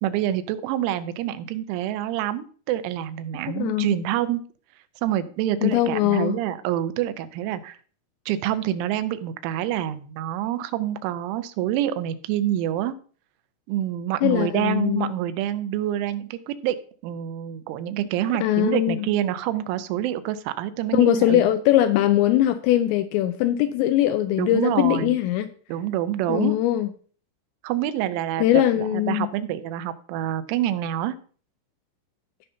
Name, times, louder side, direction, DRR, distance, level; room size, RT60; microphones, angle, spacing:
voice 1, 0.0-4.4 5.0-7.8 8.3-12.9 13.7-16.8 17.0-21.5 24.4-25.2 25.7-26.6 27.6-31.2, right 12 dB, 85° right, 3.1 m, -27 dB
voice 2, 3.6-3.9 5.6-6.4 14.2-15.1 18.4-19.1 20.9-25.5 26.3-26.9 28.4-29.3, left 13 dB, 85° left, 2.6 m, -21 dB
16.5 x 5.6 x 2.7 m
omnidirectional pair, 5.5 m